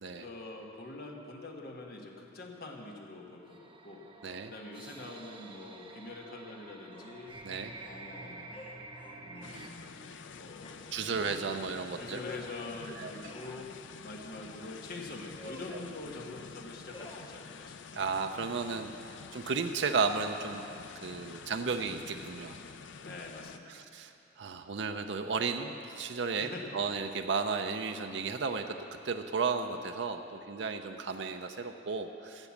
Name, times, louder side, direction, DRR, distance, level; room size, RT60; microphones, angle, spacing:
voice 1, 0.1-4.0 4.4-7.3 7.8-8.6 9.1-13.8 14.0-18.2 22.1-22.3 23.0-23.9 26.4-26.9, left 2 dB, 55° left, 0 dB, 1.4 m, -45 dB
sound 1, 3.4-9.7, right 3 dB, 25° right, 0.9 m, -49 dB
sound 2, 6.9-7.2 8.5-9.6 10.6-10.9 12.2-12.7 13.2-13.7 14.3-14.7 15.4-16.0 16.9-17.3, left 1 dB, 30° left, 1.0 m, -50 dB
sound 3, 9.4-23.6, left 5 dB, 80° left, 0.5 m, -48 dB
voice 2, 10.9-12.2 13.0-13.1 17.9-18.9 19.3-20.6 21.0-22.6 23.7-24.1 24.4-26.5 26.7-28.8 29.0-32.5, right 5 dB, 65° right, 6 dB, 0.5 m, -33 dB
13.5 x 8.1 x 7.2 m, 2.8 s
head